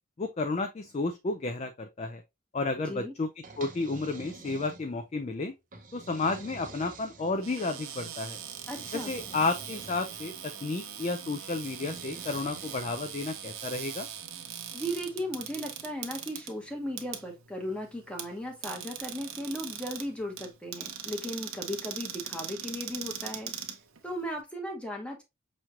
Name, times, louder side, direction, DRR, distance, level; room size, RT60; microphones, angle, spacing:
voice 1, 0.2-2.2 2.5-3.3 3.6-5.5 5.9-8.4 8.9-14.1, left 3 dB, 30° left, 0.3 m, -32 dB
sound 1, 3.4-5.1 5.7-7.7 8.5-10.4 11.6-13.2, right 3 dB, 40° right, 0.6 m, -48 dB
Cupboard open or close, 7.3-24.4, right 9 dB, 80° right, 0.7 m, -41 dB
voice 2, 8.7-9.2 14.7-23.5 24.0-25.2, equal, 5° left, 0.9 m, -36 dB
5.7 x 3.1 x 2.4 m
head